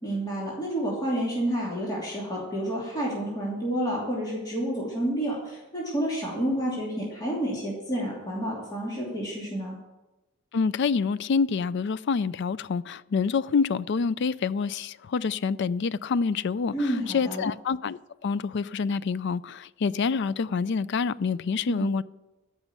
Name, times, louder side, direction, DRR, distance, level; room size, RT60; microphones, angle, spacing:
voice 1, 0.0-9.8 16.7-17.4 21.7-22.0, right 1 dB, 20° left, 2.9 m, -29 dB
voice 2, 10.5-22.0, left 5 dB, 60° left, 0.4 m, -27 dB
13.5 x 6.1 x 8.3 m
head